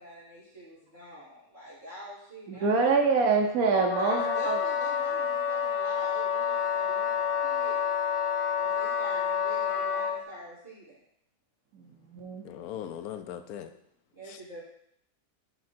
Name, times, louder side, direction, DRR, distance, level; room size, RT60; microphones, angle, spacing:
voice 1, 0.0-2.9 4.0-7.8 8.6-11.0 14.1-14.6, right 1 dB, 40° right, -14 dB, 2.8 m, -44 dB
voice 2, 2.5-4.6 11.7-12.4, right 4 dB, 80° right, 2 dB, 1.2 m, -25 dB
Wind instrument woodwind instrument, 3.7-10.2, left 8 dB, 70° left, 1.5 m, -29 dB
voice 3, 12.4-13.7 14.3-14.4, left 10 dB, 90° left, 9 dB, 1.1 m, -39 dB
8.7 x 3.8 x 4.3 m, 0.74 s
omnidirectional pair, 1.5 m